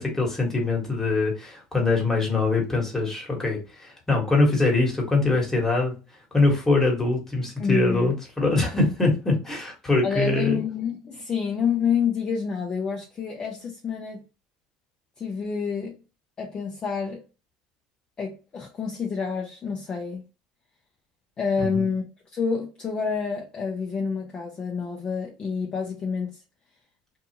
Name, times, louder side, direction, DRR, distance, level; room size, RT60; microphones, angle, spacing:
voice 1, 0.0-5.9 6.3-10.6 21.6-21.8, left 3 dB, 15° left, 1.4 m, -23 dB
voice 2, 7.6-8.1 8.7-8.8 10.0-14.2 15.2-16.0 16.4-17.2 18.2-20.2 21.4-22.0 22.3-26.4, left 6 dB, 35° left, 0.6 m, -28 dB
2.7 x 2.3 x 2.8 m
supercardioid pair, 100°, 3 cm